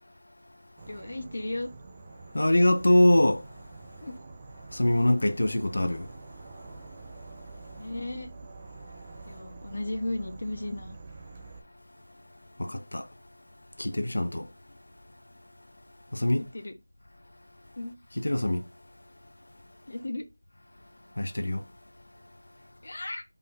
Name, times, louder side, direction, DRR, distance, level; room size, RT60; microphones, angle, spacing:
Insect / Frog, 0.8-11.6, right 3 dB, 15° right, 0.7 m, -46 dB
voice 1, 0.9-1.7 4.0-4.1 7.8-8.3 9.3-11.0 16.4-16.7 17.8-18.0 19.9-20.2 22.8-23.2, left 2 dB, 45° left, 1.2 m, -35 dB
voice 2, 2.3-3.4 4.7-6.1 12.6-13.1 13.8-14.5 16.1-16.5 18.2-18.7 21.2-21.6, left 1 dB, 70° left, 1.0 m, -23 dB
5.4 x 4.2 x 5.5 m
figure-of-eight pair, 175°, 0 cm